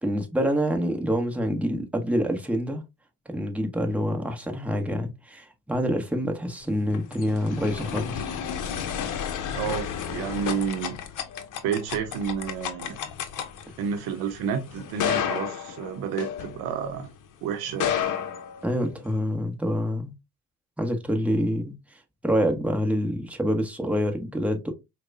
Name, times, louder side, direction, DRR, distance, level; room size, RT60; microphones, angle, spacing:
voice 1, 0.0-2.8 3.3-8.3 18.6-20.1 20.8-24.7, equal, 5° right, 1.0 m, -26 dB
sound 1, 6.7-17.1 17.6-19.2, left 8 dB, 50° left, 0.8 m, -32 dB
voice 2, 9.5-11.0 11.6-13.0 13.8-17.1 17.4-17.9, right 7 dB, 70° right, 0.8 m, -30 dB
4.7 x 2.3 x 2.6 m
hypercardioid pair, 60°, 40 cm